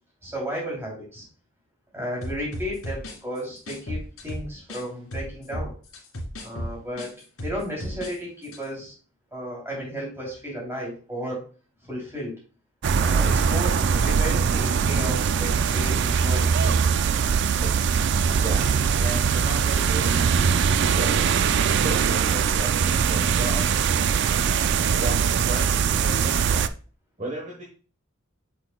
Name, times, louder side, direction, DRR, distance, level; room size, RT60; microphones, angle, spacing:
voice 1, 0.2-1.3 1.9-5.8 6.4-7.1 7.4-8.9 9.3-11.4 11.8-12.3 13.0-13.7 14.0-17.0, equal, 10° right, -3 dB, 3.1 m, -33 dB
sound 1, 2.2-4.8 5.1-8.2 8.4-8.6, equal, 80° left, 2.4 m, -34 dB
sound 2, 12.8-26.7, right 6 dB, 50° right, 0.3 m, -22 dB
voice 2, 18.3-20.2 20.8-23.7 25.0-26.7 27.2-27.6, right 1 dB, 35° right, -1 dB, 1.3 m, -35 dB
8.3 x 6.2 x 2.3 m, 0.38 s
head